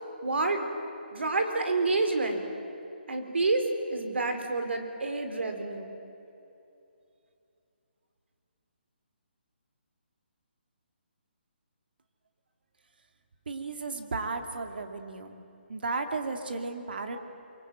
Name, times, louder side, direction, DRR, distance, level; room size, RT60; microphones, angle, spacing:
voice 1, 0.2-0.7 1.1-2.5 3.1-5.9, right 3 dB, 85° right, 6 dB, 4.3 m, -28 dB
voice 2, 13.5-15.4 15.7-17.2, right 3 dB, 60° right, 6 dB, 2.3 m, -34 dB
24.0 x 24.0 x 9.2 m, 2.8 s
hypercardioid pair, 175°, 6 cm